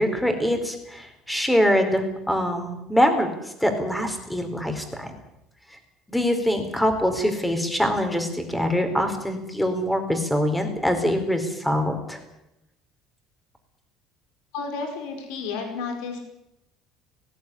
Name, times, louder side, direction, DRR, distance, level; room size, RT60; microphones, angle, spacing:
voice 1, 0.0-3.3 3.6-5.1 6.1-12.2, equal, 5° left, 6 dB, 4.2 m, -24 dB
voice 2, 14.5-16.2, left 4 dB, 85° left, 5 dB, 5.1 m, -31 dB
19.0 x 16.5 x 9.9 m, 0.87 s
cardioid pair, 130°, 0 cm